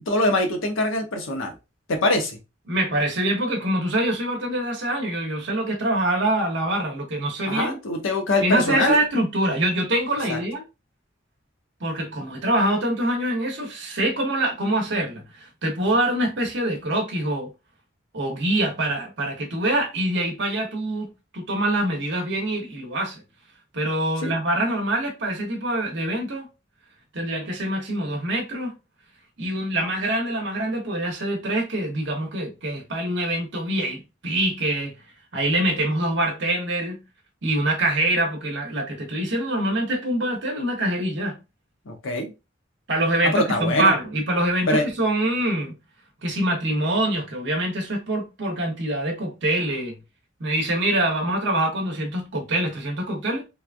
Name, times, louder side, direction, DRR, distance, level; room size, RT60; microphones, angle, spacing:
voice 1, 0.0-1.5 1.9-2.4 7.4-9.0 10.3-10.4 24.2-24.4 41.9-42.3 43.2-43.9 44.7-44.9, left 1 dB, 90° left, 0.8 m, -23 dB
voice 2, 2.7-7.8 8.4-10.6 11.8-17.5 18.1-23.2 23.7-26.5 27.1-28.7 29.4-34.9 35.3-37.0 37.4-41.4 42.9-45.7 46.2-50.0 50.4-53.5, right 1 dB, 65° right, 0.9 m, -25 dB
3.1 x 2.3 x 2.4 m
head